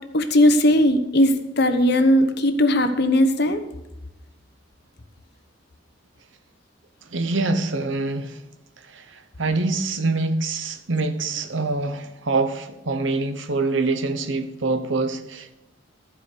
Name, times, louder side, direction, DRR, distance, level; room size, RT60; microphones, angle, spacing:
voice 1, 0.1-3.6, left 1 dB, 55° left, 1.0 m, -18 dB
voice 2, 7.1-8.4 8.8-15.5, right 3 dB, 75° right, 1.0 m, -25 dB
14.5 x 5.0 x 6.7 m
head